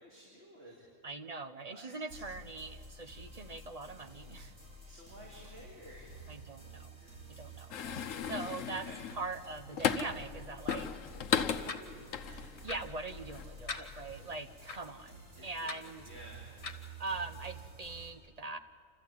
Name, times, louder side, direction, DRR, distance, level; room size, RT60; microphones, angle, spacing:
voice 1, 0.0-0.9 1.7-2.2 4.9-6.5 7.0-7.4 7.8-9.0 11.3-12.7 13.8-13.9 14.3-14.6 15.4-15.5 15.8-16.5, equal, 55° right, -4 dB, 3.4 m, -54 dB
voice 2, 1.0-4.5 6.3-6.9 7.3-8.0 8.3-8.9 9.1-10.9 12.6-16.1 17.0-18.6, right 3 dB, 40° right, 8 dB, 0.7 m, -42 dB
sound 1, 2.1-18.1, right 1 dB, 80° right, 5.4 m, -51 dB
sound 2, 7.7-10.3 10.7-12.8 13.2-13.4, left 8 dB, 85° left, 1.2 m, -35 dB
sound 3, 10.7-10.8 11.7-11.8 12.7-12.8 13.7-13.8 14.7-14.8 15.7-15.8 16.6-16.8, left 5 dB, 60° left, 1.7 m, -39 dB
29.0 x 13.5 x 8.4 m, 2.3 s
omnidirectional pair, 1.3 m